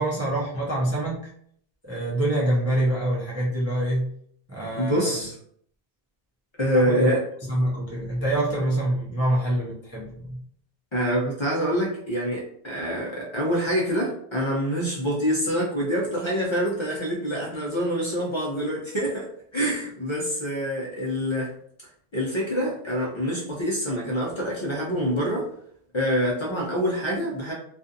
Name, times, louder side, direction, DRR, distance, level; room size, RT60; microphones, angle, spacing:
voice 1, 0.0-1.3 1.8-4.1 4.5-5.2 6.7-7.1 7.4-10.4, right 1 dB, 20° right, -5 dB, 0.4 m, -25 dB
voice 2, 4.8-5.4 6.6-7.2 10.9-19.3 19.5-21.5 22.1-25.5 25.9-27.5, equal, 35° left, -4 dB, 0.5 m, -26 dB
2.5 x 2.3 x 2.6 m, 0.66 s
omnidirectional pair, 1.0 m